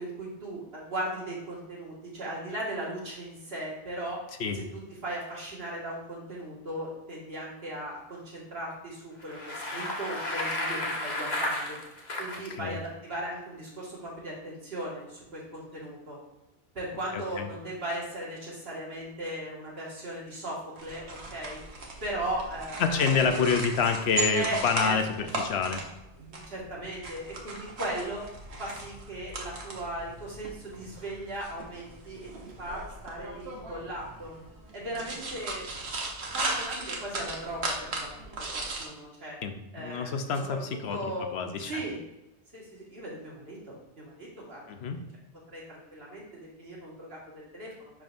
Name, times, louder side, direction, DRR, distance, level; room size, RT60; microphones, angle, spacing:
voice 1, 0.0-4.2 4.5-11.8 12.2-16.2 16.7-21.6 22.0-23.5 24.3-25.3 26.5-28.2 28.6-34.3 34.7-35.7 36.3-39.4 39.7-40.1 40.5-40.6 40.9-41.3 41.6-42.0 42.5-44.7 45.5-46.3 46.6-47.2 47.5-47.9, right 1 dB, 70° right, -5 dB, 2.1 m, -37 dB
Bicycle, 9.2-12.5, left 1 dB, 45° left, 1.0 m, -33 dB
voice 2, 17.1-17.5 22.8-25.8 39.4-41.0 41.3-41.7 44.7-45.0, left 5 dB, 80° left, 7 dB, 0.9 m, -27 dB
sound 1, 20.8-38.9, right 2 dB, 90° right, 1.3 m, -37 dB
10.5 x 3.7 x 2.6 m, 0.91 s
omnidirectional pair, 1.1 m